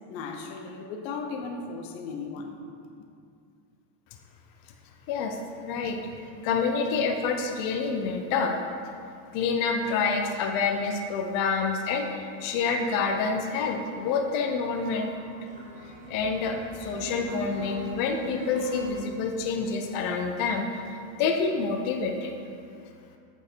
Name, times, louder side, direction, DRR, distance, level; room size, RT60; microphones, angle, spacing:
voice 1, 0.1-2.6 5.7-5.9, left 4 dB, 85° left, 4 dB, 1.1 m, -36 dB
voice 2, 5.1-6.0 6.4-8.6 9.3-15.1 16.1-22.4, left 5 dB, 45° left, 3 dB, 0.7 m, -28 dB
sound 1, 12.2-18.9, right 3 dB, 15° right, 1.0 m, -43 dB
8.6 x 4.5 x 4.6 m, 2.4 s
cardioid pair, 155°, 49 cm